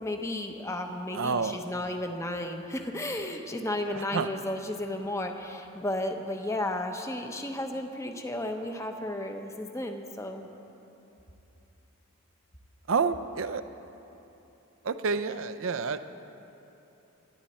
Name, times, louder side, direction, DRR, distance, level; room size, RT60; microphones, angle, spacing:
voice 1, 0.0-10.5, left 1 dB, 15° left, 5 dB, 0.9 m, -33 dB
voice 2, 1.1-1.6 4.1-4.3 12.9-13.6 14.8-16.0, right 5 dB, 65° right, 10 dB, 0.6 m, -28 dB
27.5 x 10.5 x 4.3 m, 3.0 s
head